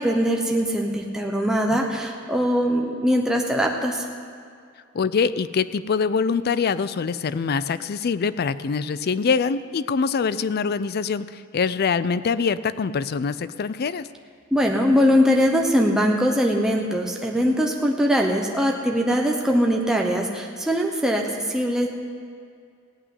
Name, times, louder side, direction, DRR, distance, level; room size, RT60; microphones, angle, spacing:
voice 1, 0.0-4.0 14.5-21.9, equal, 5° right, 0 dB, 0.9 m, -21 dB
voice 2, 4.9-14.1, left 5 dB, 50° left, 15 dB, 0.4 m, -24 dB
16.5 x 5.9 x 9.5 m, 2.2 s
head